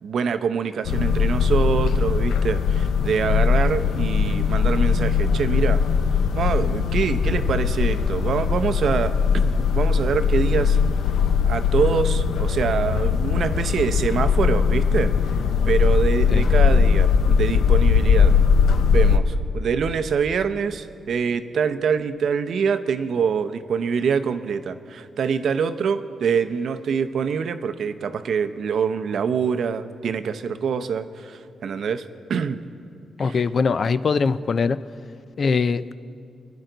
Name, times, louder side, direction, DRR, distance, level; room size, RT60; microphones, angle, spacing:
voice 1, 0.0-5.8 6.3-10.8 11.4-15.1 15.7-18.4 18.9-32.6 33.2-33.4, right 6 dB, 65° right, 10 dB, 0.6 m, -25 dB
sound 1, 0.9-19.2, left 6 dB, 90° left, 0.7 m, -20 dB
voice 2, 33.2-34.8 35.4-35.9, left 5 dB, 45° left, 14 dB, 0.4 m, -22 dB
25.5 x 10.5 x 3.9 m, 2.4 s
cardioid pair, 125°, 0 cm